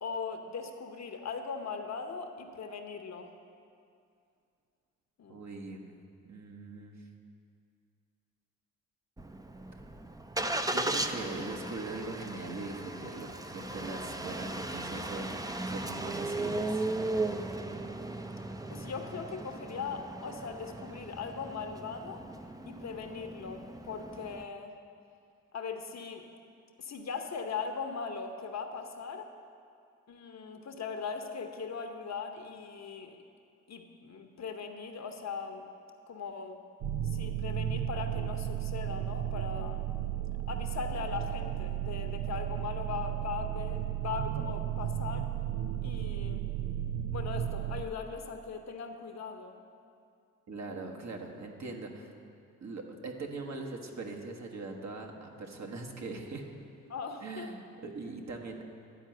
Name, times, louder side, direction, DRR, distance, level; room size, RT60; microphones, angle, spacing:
voice 1, 0.0-3.3 5.2-5.4 18.7-22.2 22.7-24.7 25.5-26.3 26.8-29.3 30.1-33.2 33.7-35.7 36.1-36.6 37.0-40.1 40.5-45.3 45.8-46.4 47.1-49.6 56.9-57.5, left 5 dB, 50° left, 5 dB, 0.9 m, -39 dB
voice 2, 5.3-6.0 6.2-7.0 10.7-16.9 50.5-52.2 52.6-56.5 57.2-58.6, right 3 dB, 50° right, 2 dB, 1.3 m, -41 dB
Engine starting, 9.2-24.4, right 2 dB, 10° right, 0.6 m, -37 dB
sound 1, 36.8-47.8, right 11 dB, 80° right, 0.5 m, -34 dB
11.0 x 4.6 x 7.7 m, 2.4 s
supercardioid pair, 50°, 35 cm